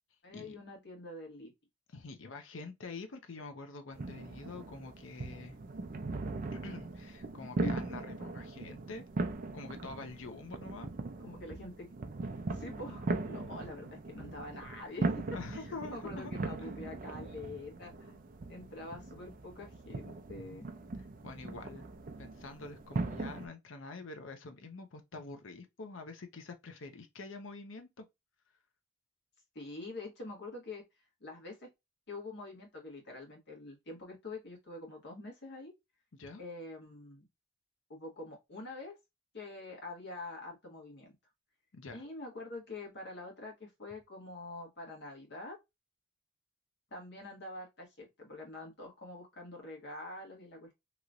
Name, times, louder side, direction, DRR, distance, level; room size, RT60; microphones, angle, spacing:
voice 1, 0.2-1.5 7.6-7.8 11.2-11.9 12.5-18.2 18.5-20.7 29.5-30.8 31.2-31.7 32.1-35.7 36.4-37.2 37.9-39.0 39.3-41.1 41.9-45.6 46.9-50.7, left 2 dB, 60° left, 1.5 m, -45 dB
voice 2, 1.9-5.6 6.5-9.0 9.5-10.9 15.3-16.3 16.6-16.7 21.2-21.9 22.2-28.1 36.1-36.4 41.7-42.0, left 3 dB, 75° left, 0.7 m, -46 dB
sound 1, 3.9-23.5, right 3 dB, 45° right, 0.5 m, -39 dB
3.0 x 2.9 x 2.4 m
head